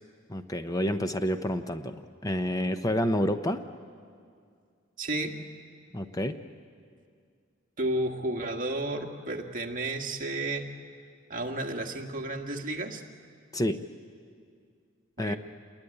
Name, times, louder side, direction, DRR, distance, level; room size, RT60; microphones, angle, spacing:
voice 1, 0.3-1.9 2.2-3.6 5.9-6.4 13.5-13.8 15.2-15.4, equal, 20° left, 9 dB, 0.7 m, -28 dB
voice 2, 5.0-5.4 7.8-10.7 11.3-13.0 15.2-15.4, right 2 dB, 45° right, 2 dB, 1.8 m, -32 dB
28.0 x 21.5 x 9.9 m, 2.2 s
head